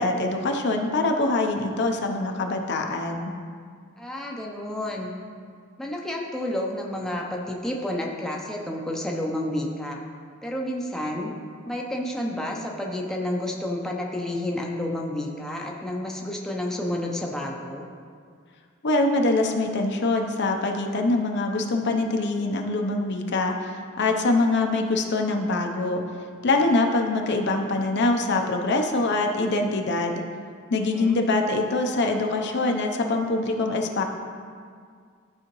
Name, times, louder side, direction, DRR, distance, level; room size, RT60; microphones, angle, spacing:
voice 1, 0.0-3.3 18.8-23.5 24.0-26.0 26.4-30.2 30.7-34.0, left 2 dB, 55° left, 3 dB, 0.7 m, -24 dB
voice 2, 4.0-5.1 5.8-10.0 10.4-11.3 11.7-17.9 30.7-31.2, left 1 dB, ahead, -2 dB, 0.6 m, -30 dB
13.0 x 4.9 x 3.1 m, 2.1 s
head